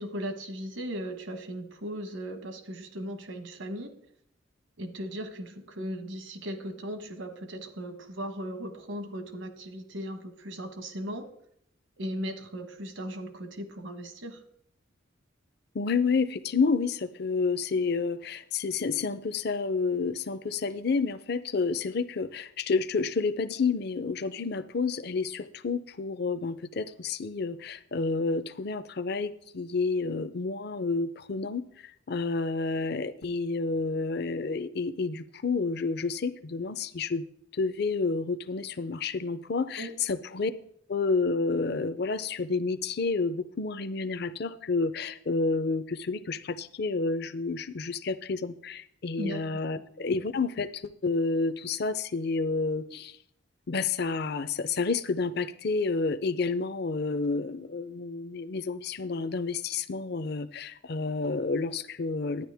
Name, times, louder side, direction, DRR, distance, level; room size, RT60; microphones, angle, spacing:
voice 1, 0.0-4.0 4.8-11.3 12.0-14.4 39.8-39.9 49.1-49.4, equal, 75° right, 8 dB, 1.3 m, -37 dB
voice 2, 15.7-37.2 37.5-40.5 40.9-53.2 53.7-62.4, left 4 dB, 55° left, 13 dB, 0.6 m, -30 dB
12.0 x 9.7 x 3.5 m, 0.69 s
head